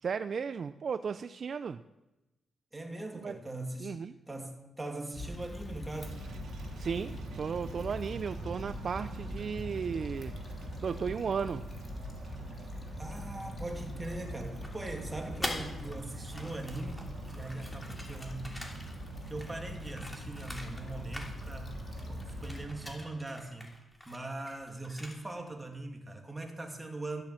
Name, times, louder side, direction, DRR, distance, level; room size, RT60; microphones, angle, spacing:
voice 1, 0.0-1.8 3.2-3.4 3.8-4.1 6.8-10.3 10.8-11.6, right 6 dB, 55° right, 12 dB, 0.4 m, -35 dB
voice 2, 2.7-4.0 4.3-6.2 13.0-17.1 17.3-18.6 19.3-21.8 22.1-23.7 24.0-27.2, right 2 dB, 15° right, 2 dB, 2.6 m, -41 dB
Stream / Traffic noise roadway noise / Trickle dribble, 5.1-22.7, left 2 dB, 40° left, 2.9 m, -43 dB
sound 1, 6.0-23.0, right 5 dB, 75° right, 1.1 m, -47 dB
sound 2, 14.6-16.0 16.2-20.9 21.1-21.7 22.0-25.4, left 1 dB, 10° left, 3.0 m, -44 dB
14.5 x 8.7 x 7.5 m, 0.98 s
cardioid pair, 90°, 0 cm